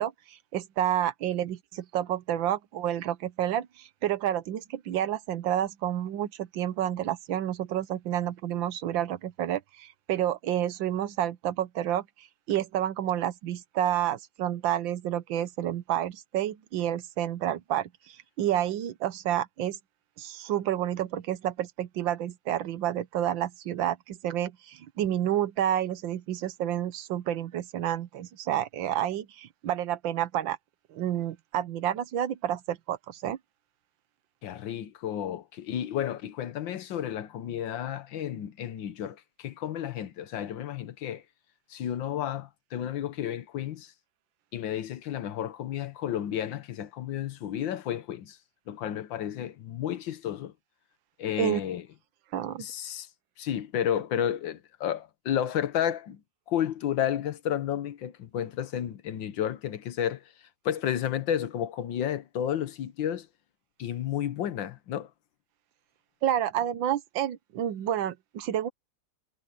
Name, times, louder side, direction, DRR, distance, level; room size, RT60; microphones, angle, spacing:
voice 1, 0.0-19.8 20.2-30.6 30.9-33.4 51.4-51.6 52.3-52.7 66.2-68.7, right 11 dB, 85° right, 1.6 m, -29 dB
voice 2, 34.4-41.2 41.7-43.9 44.5-48.4 48.7-50.5 51.2-51.8 52.6-53.1 53.4-56.2 56.5-60.2 60.6-63.3 63.8-65.1, left 10 dB, 80° left, 1.7 m, -32 dB
omnidirectional pair, 2.0 m